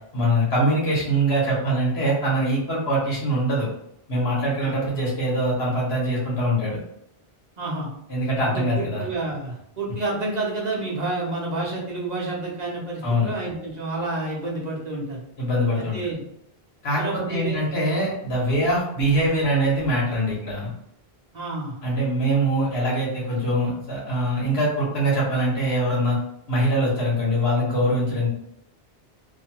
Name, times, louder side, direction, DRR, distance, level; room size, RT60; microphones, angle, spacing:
voice 1, 0.1-3.7 4.1-6.8 8.1-9.0 13.0-13.3 15.4-16.0 16.8-20.7 21.8-26.2 26.5-28.3, right 1 dB, 80° left, -4 dB, 1.5 m, -23 dB
voice 2, 7.6-7.9 8.4-15.2 15.9-16.2 16.9-17.7 21.3-21.8, right 2 dB, 45° right, -4 dB, 0.8 m, -29 dB
3.1 x 2.2 x 2.9 m, 0.77 s
omnidirectional pair, 1.0 m